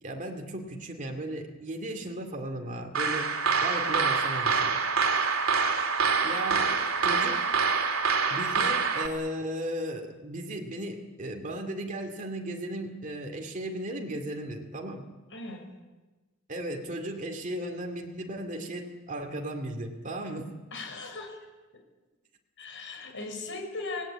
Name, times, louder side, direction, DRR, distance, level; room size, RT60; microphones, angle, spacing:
voice 1, 0.0-4.7 6.2-6.7 7.0-7.5 8.3-15.1 16.5-20.5, right 1 dB, 35° right, 2 dB, 2.4 m, -36 dB
sound 1, 2.9-9.1, right 5 dB, 70° right, 3.1 m, -26 dB
voice 2, 15.3-15.7 20.7-21.4 22.6-24.0, left 3 dB, 60° left, 3 dB, 6.1 m, -38 dB
27.0 x 18.5 x 8.8 m, 1.2 s
head